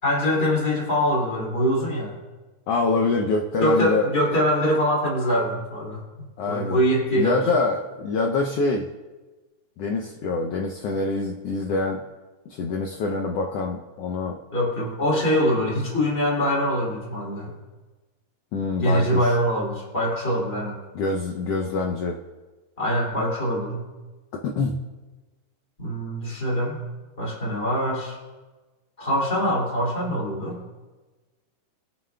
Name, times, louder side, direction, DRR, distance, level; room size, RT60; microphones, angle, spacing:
voice 1, 0.0-2.1 3.6-7.4 14.5-17.5 18.8-20.8 22.8-23.8 25.8-26.8 27.2-28.2 29.0-30.6, equal, 20° left, -4 dB, 2.4 m, -23 dB
voice 2, 2.7-4.1 6.4-6.8 7.1-8.9 9.8-12.0 12.5-14.4 18.5-19.3 20.9-22.2 24.3-24.8, left 3 dB, 80° left, 1 dB, 1.4 m, -25 dB
22.0 x 7.4 x 2.2 m, 1.2 s
omnidirectional pair, 3.5 m